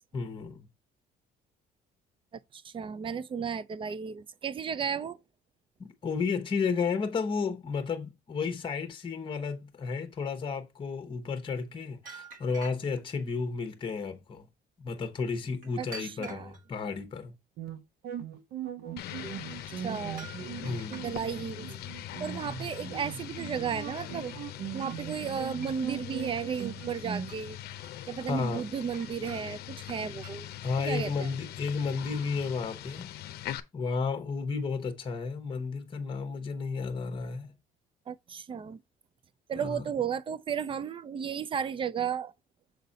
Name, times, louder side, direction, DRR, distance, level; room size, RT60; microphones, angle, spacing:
voice 1, 0.1-0.6 5.8-14.5 14.8-17.3 20.5-21.1 28.2-28.7 30.6-33.1 33.7-37.5 39.5-39.9, left 5 dB, 30° left, 1.0 m, -32 dB
voice 2, 2.5-5.2 15.8-16.5 19.8-20.3 21.0-21.7 22.2-24.4 24.7-27.6 28.1-30.5 30.8-31.3 38.1-38.8 39.5-42.3, right 7 dB, 30° right, 0.4 m, -34 dB
sound 1, 12.0-13.2 15.6-16.7 19.4-19.6 20.1-21.4 23.5-23.7 24.0-25.0 25.6-26.0 26.4-27.0 27.3-28.0 28.9-29.6 29.9-30.4, right 3 dB, 55° right, 1.8 m, -48 dB
sound 2, 17.6-27.3, right 9 dB, 70° right, 1.0 m, -40 dB
sound 3, 19.0-33.6, left 13 dB, 70° left, 0.6 m, -42 dB
6.4 x 4.0 x 4.0 m
cardioid pair, 110°, 17 cm